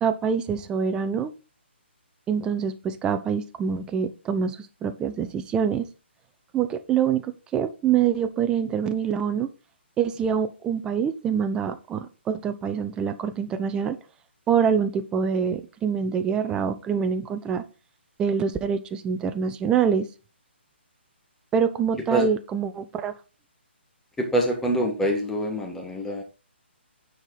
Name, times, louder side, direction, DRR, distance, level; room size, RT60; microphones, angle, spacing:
voice 1, 0.0-1.3 2.3-5.8 6.5-9.5 10.0-14.0 14.5-17.6 18.2-20.1 21.5-23.1, right 7 dB, 10° right, 10 dB, 0.5 m, -25 dB
voice 2, 24.2-26.2, right 1 dB, 5° left, 1 dB, 1.5 m, -25 dB
8.9 x 4.6 x 4.0 m, 0.34 s
hypercardioid pair, 145°, 6 cm